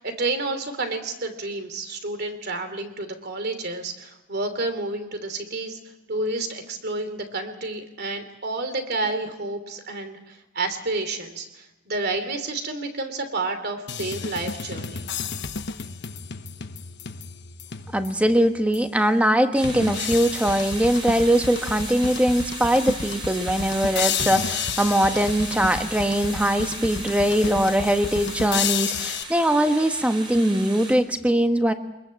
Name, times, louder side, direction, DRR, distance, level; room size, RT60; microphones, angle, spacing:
voice 1, 0.0-5.8 6.1-15.0, right 2 dB, 50° right, 8 dB, 2.9 m, -30 dB
sound 1, 13.9-18.3 18.7-18.8 19.6-29.2, left 6 dB, 55° left, 1.1 m, -31 dB
voice 2, 17.9-31.7, right 1 dB, 5° right, 7 dB, 1.3 m, -21 dB
sound 2, 19.5-31.0, right 2 dB, 25° right, 5.1 m, -37 dB
24.5 x 21.5 x 7.7 m, 0.95 s
head